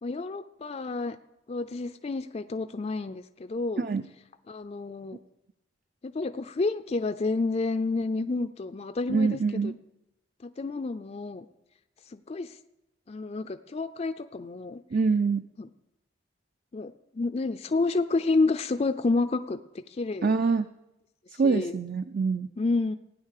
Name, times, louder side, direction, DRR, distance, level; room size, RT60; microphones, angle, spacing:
voice 1, 0.0-1.2 1.5-3.8 4.5-5.2 6.0-9.7 10.4-11.5 12.1-12.5 13.1-14.8 15.6-15.7 16.7-19.6 19.9-20.3 21.4-21.8 22.6-23.0, left 3 dB, 35° left, 10 dB, 0.4 m, -29 dB
voice 2, 9.1-9.8 14.9-15.4 20.2-20.7 21.4-22.5, right 4 dB, 50° right, 10 dB, 0.5 m, -25 dB
16.5 x 9.5 x 6.6 m, 0.91 s
head